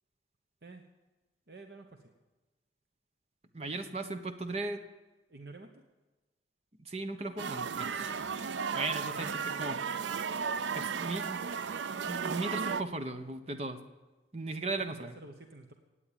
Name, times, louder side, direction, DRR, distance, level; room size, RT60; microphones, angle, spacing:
voice 1, 1.5-2.1 5.3-5.8 9.1-9.7 14.8-15.7, right 2 dB, 55° right, 4 dB, 1.0 m, -49 dB
voice 2, 3.5-4.8 6.8-9.8 10.7-11.5 12.1-13.8 14.3-15.1, right 2 dB, 35° right, 8 dB, 1.1 m, -37 dB
sound 1, 7.4-12.8, right 6 dB, 80° right, 0.5 m, -34 dB
17.5 x 8.7 x 8.8 m, 1.2 s
head